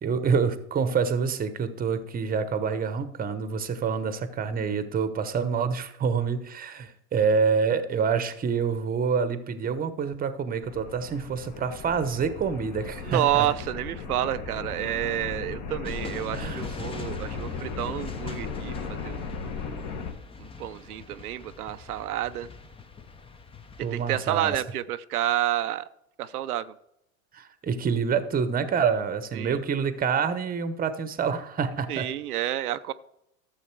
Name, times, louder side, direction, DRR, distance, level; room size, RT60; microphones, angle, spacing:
voice 1, 0.0-13.5 16.4-16.6 23.8-24.6 27.3-32.1, right 6 dB, 20° right, 12 dB, 1.0 m, -27 dB
sound 1, 10.6-20.1, left 5 dB, 45° left, 1.7 m, -36 dB
voice 2, 13.0-19.3 20.4-22.5 23.9-25.8 26.2-26.7 29.3-29.6 31.9-32.9, right 12 dB, 85° right, 11 dB, 0.7 m, -29 dB
sound 2, 15.8-24.3, left 4 dB, 15° left, 0.7 m, -44 dB
12.5 x 7.3 x 4.6 m, 0.80 s
hypercardioid pair, 100°, 43 cm